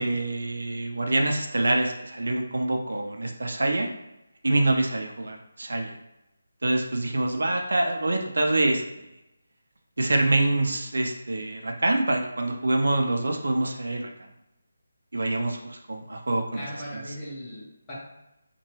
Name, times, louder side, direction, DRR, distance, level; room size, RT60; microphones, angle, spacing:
voice 1, 0.0-3.9 4.4-6.0 6.6-9.0 10.0-14.1 15.1-16.7, right 2 dB, 75° right, 3 dB, 0.4 m, -25 dB
voice 2, 16.5-17.9, equal, 20° left, -8 dB, 1.0 m, -38 dB
2.8 x 2.2 x 3.0 m, 0.90 s
figure-of-eight pair, 165°, 0 cm